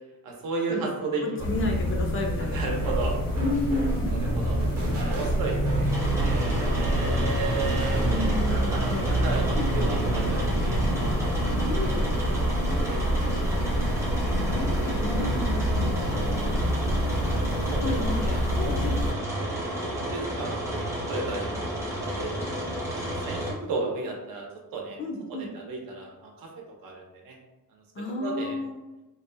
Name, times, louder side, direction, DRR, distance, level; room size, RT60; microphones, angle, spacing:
voice 1, 0.2-1.5 2.4-3.1 4.1-4.6 5.0-5.9 6.1-11.5 12.2-12.4 12.8-13.0 13.5-14.1 17.7-19.0 19.4-22.4 23.1-24.5 24.7-25.0 25.3-27.4 27.7-27.8 28.2-28.6, right 3 dB, 80° right, 0 dB, 0.7 m, -35 dB
sound 1, 1.4-19.1, equal, 85° left, 0.9 m, -27 dB
voice 2, 1.4-3.0 3.4-4.1 8.0-9.8 11.7-12.0 12.7-12.8 14.2-16.3 17.8-19.0 19.8-20.0 25.0-25.5 27.9-28.8, left 2 dB, 40° left, 0 dB, 0.4 m, -32 dB
sound 2, 2.8-8.4, left 1 dB, 45° right, 0.7 m, -33 dB
sound 3, 5.9-23.5, equal, 10° right, 0.5 m, -32 dB
2.6 x 2.1 x 2.5 m, 1.0 s
wide cardioid pair, 175°, 34 cm